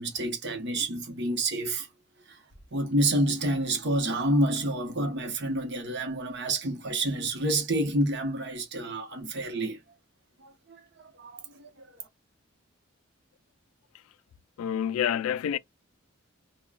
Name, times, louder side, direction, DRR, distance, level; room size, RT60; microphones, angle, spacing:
voice 1, 0.0-1.9 2.3-2.4 2.7-9.8 10.4-11.9, right 1 dB, 55° right, 0.9 m, -29 dB
voice 2, 14.6-15.6, left 9 dB, 85° left, 0.3 m, -27 dB
3.6 x 2.2 x 2.3 m
head